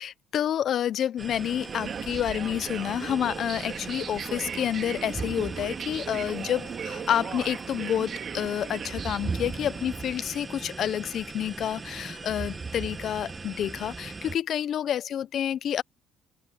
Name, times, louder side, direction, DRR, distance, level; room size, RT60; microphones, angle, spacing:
voice 1, 0.0-15.8, left 10 dB, 60° left, 0.9 m, -29 dB
sound 1, 1.2-14.4, right 4 dB, 30° right, 1.7 m, -39 dB
sound 2, 1.4-10.0, right 7 dB, 50° right, 3.4 m, -38 dB
supercardioid pair, 70°, 0 cm